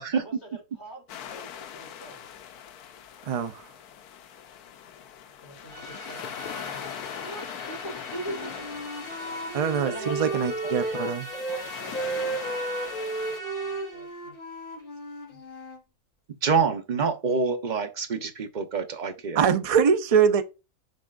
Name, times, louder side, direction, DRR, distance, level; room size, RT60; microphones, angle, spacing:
voice 1, 0.0-2.2 5.4-6.3 6.6-8.7 9.3-9.4 9.8-14.3 15.3-15.4, right 1 dB, 60° left, 4.5 m, -43 dB
sound 1, 1.1-13.4, left 9 dB, 85° left, 1.2 m, -41 dB
voice 2, 3.3-3.6 9.5-11.3 19.3-20.4, right 7 dB, 60° right, 0.3 m, -23 dB
sound 2, 5.7-14.1, right 2 dB, 80° right, 1.9 m, -42 dB
Wind instrument woodwind instrument, 8.2-11.6 11.9-15.8, right 2 dB, 35° left, 2.8 m, -34 dB
voice 3, 16.4-19.4, right 5 dB, 35° right, 0.8 m, -26 dB
10.5 x 3.6 x 2.5 m
omnidirectional pair, 1.6 m